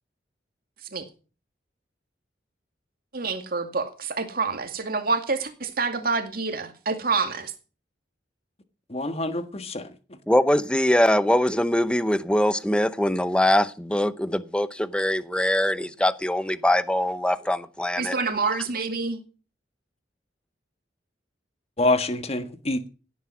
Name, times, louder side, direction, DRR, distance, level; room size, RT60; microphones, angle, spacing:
voice 1, 3.1-7.5 18.0-19.2, right 4 dB, 55° right, 2.3 m, -27 dB
voice 2, 8.9-9.9 21.8-22.9, left 2 dB, 35° left, 1.5 m, -26 dB
voice 3, 10.3-18.2, left 1 dB, 5° left, 0.7 m, -22 dB
16.5 x 9.5 x 6.1 m
head